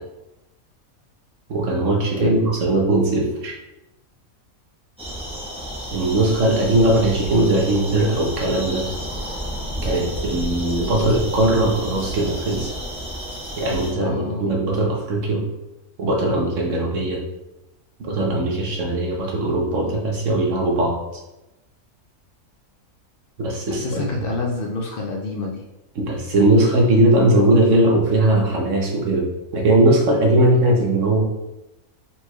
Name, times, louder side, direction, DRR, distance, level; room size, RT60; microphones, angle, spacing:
voice 1, 1.5-3.5 5.9-8.8 9.8-12.7 13.6-15.4 16.0-17.2 18.0-21.0 23.4-24.0 25.9-29.3 29.5-31.2, right 1 dB, 65° right, -1 dB, 1.2 m, -19 dB
sound 1, 5.0-13.9, equal, 5° right, 0.9 m, -31 dB
voice 2, 14.0-14.5 23.7-25.6, left 3 dB, 60° left, 0 dB, 0.6 m, -28 dB
4.5 x 4.3 x 2.3 m, 0.97 s
omnidirectional pair, 1.5 m